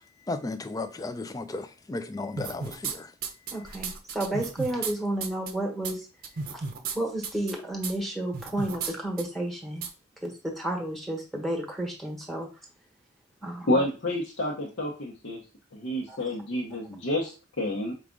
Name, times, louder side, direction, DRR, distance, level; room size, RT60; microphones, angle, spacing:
voice 1, 0.3-3.1, left 2 dB, 20° left, 0.3 m, -34 dB
sound 1, 2.4-2.9 3.2-4.9 5.2-5.5 5.8-5.9 6.2-7.0 7.2-7.5 7.8-7.9 8.3-8.9 9.2-9.3 9.8-9.9, right 5 dB, 45° right, 0.6 m, -33 dB
voice 2, 3.5-6.0 6.9-9.8 10.2-12.5 13.4-13.7 16.1-16.2, right 1 dB, ahead, 1.1 m, -31 dB
voice 3, 13.7-15.4 15.7-17.9, left 1 dB, 60° left, 0.8 m, -29 dB
4.8 x 2.4 x 3.7 m
head